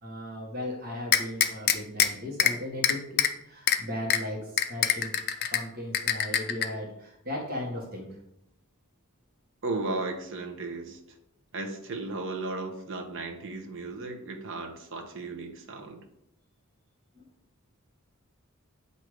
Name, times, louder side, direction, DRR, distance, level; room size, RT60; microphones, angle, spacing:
voice 1, 0.0-8.2 17.1-17.2, left 1 dB, 45° right, -2 dB, 1.3 m, -37 dB
sound 1, 1.1-2.1 2.4-2.5 2.8-3.3 3.7-3.8 4.1-4.2 4.6-5.6 5.9-6.7, left 10 dB, 45° left, 0.4 m, -23 dB
voice 2, 9.6-11.0 11.5-16.0, right 3 dB, 60° right, 4 dB, 0.9 m, -35 dB
7.8 x 2.7 x 4.8 m, 0.80 s
head